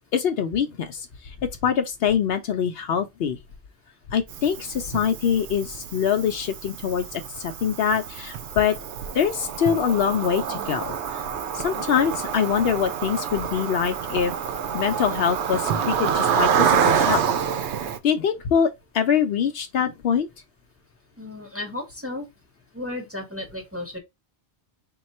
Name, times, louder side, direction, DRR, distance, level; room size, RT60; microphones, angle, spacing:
voice 1, 0.1-1.3 1.6-3.4 4.1-8.8 9.1-11.2 11.5-14.3 14.7-17.3 18.0-20.3, left 7 dB, 70° left, 0.7 m, -24 dB
Drum, 1.6-2.4 4.9-6.7 9.6-12.1 15.7-18.8, right 6 dB, 60° right, 0.6 m, -40 dB
Cricket, 4.3-18.0, right 7 dB, 90° right, 0.9 m, -27 dB
voice 2, 21.2-22.3 22.7-24.0, left 2 dB, 15° right, 0.9 m, -34 dB
3.7 x 2.3 x 4.1 m
omnidirectional pair, 1.1 m